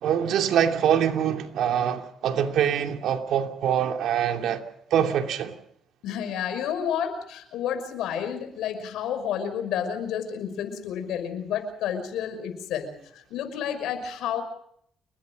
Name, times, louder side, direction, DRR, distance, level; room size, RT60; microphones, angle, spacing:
voice 1, 0.0-4.7 4.9-5.6, right 9 dB, 80° right, 2.7 m, -24 dB
voice 2, 6.0-14.4, left 8 dB, 85° left, 5.9 m, -30 dB
29.5 x 21.5 x 5.3 m
cardioid pair, 90°, 0 cm